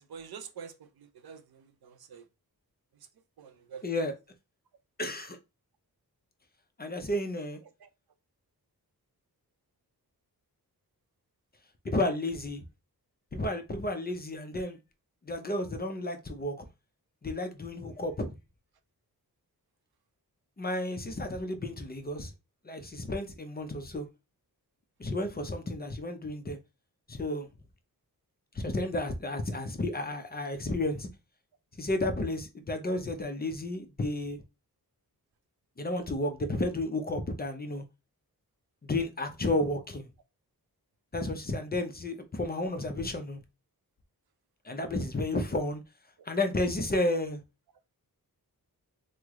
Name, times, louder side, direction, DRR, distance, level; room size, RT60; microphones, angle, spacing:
voice 1, 0.0-2.3 3.4-3.8 7.8-7.9, right 6 dB, 75° right, 0.5 m, -47 dB
voice 2, 3.8-4.1 5.0-5.4 6.8-7.6 11.8-12.6 13.3-14.8 15.2-16.5 17.2-18.4 20.6-22.3 22.6-24.1 25.0-26.6 27.1-27.5 28.5-31.1 31.8-34.4 35.8-37.8 38.8-40.1 41.1-43.4 44.6-45.8 46.3-47.4, left 1 dB, 25° left, 0.4 m, -32 dB
3.1 x 2.0 x 3.5 m
wide cardioid pair, 130°, 37 cm